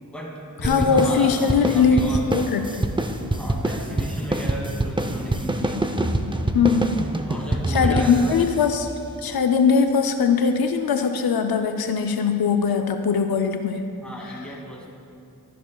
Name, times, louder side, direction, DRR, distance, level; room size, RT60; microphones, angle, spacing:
voice 1, 0.1-2.3 3.3-5.9 7.3-8.4 14.0-14.9, equal, 5° left, -2 dB, 2.3 m, -33 dB
voice 2, 0.6-2.9 6.5-7.0 7.7-8.9 9.2-13.9, left 5 dB, 85° left, 6 dB, 0.5 m, -21 dB
sound 1, 0.6-9.5, right 1 dB, 15° right, 0.6 m, -26 dB
13.0 x 10.5 x 2.3 m, 2.5 s
cardioid pair, 50°, 36 cm